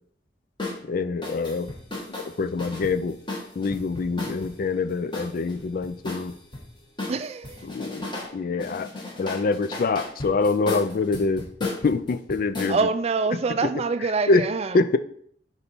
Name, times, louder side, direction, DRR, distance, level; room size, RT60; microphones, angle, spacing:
sound 1, 0.6-0.8 1.2-4.5 5.1-6.6 7.0-8.3 8.6-12.7, left 2 dB, 25° left, 1.5 m, -34 dB
voice 1, 0.8-1.7 2.2-3.2 3.6-6.3 7.6-8.1 8.3-8.9 9.2-12.8 14.3-14.4 14.7-15.0, left 3 dB, 50° left, 0.4 m, -25 dB
voice 2, 7.1-7.7 9.4-9.5 12.7-14.8, right 4 dB, 35° right, 0.4 m, -26 dB
6.9 x 4.1 x 4.4 m
head